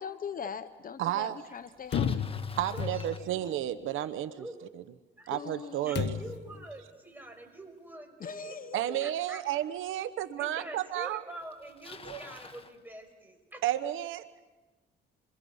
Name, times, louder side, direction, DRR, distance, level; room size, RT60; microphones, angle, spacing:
voice 1, 0.0-2.4 5.3-6.2 8.2-9.1, left 6 dB, 45° left, 11 dB, 1.0 m, -41 dB
voice 2, 1.0-1.4 2.6-4.3 5.3-6.2 8.7-11.2 12.1-12.2 13.6-14.4, right 12 dB, 85° right, 12 dB, 1.0 m, -32 dB
Bicycle, 1.5-3.9 8.9-9.0 9.9-10.0 11.0-11.1 11.3-12.8, left 4 dB, 30° left, 1.5 m, -48 dB
sound 1, 1.9-3.4 6.0-6.5, left 7 dB, 60° left, 1.2 m, -32 dB
voice 3, 2.7-3.3 4.4-4.6 5.2-8.6 9.0-9.4 10.4-13.9, right 1 dB, 10° right, 3 dB, 6.0 m, -46 dB
28.0 x 25.0 x 5.5 m, 1.2 s
cardioid pair, 90°, 20 cm